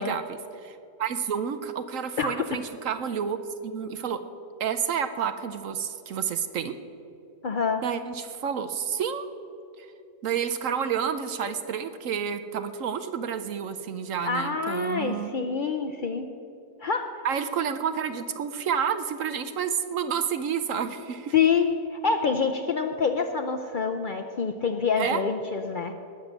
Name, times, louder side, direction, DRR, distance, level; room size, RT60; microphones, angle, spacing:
voice 1, 0.0-3.4 3.6-4.2 4.6-6.8 7.8-9.3 9.8-9.9 10.2-15.4 17.2-21.3 25.0-25.2, right 7 dB, 65° right, 10 dB, 1.0 m, -30 dB
voice 2, 7.4-7.8 14.2-16.3 16.8-17.1 21.3-25.9, left 5 dB, 85° left, 5 dB, 0.4 m, -26 dB
19.5 x 6.7 x 7.3 m, 2.7 s
omnidirectional pair, 1.7 m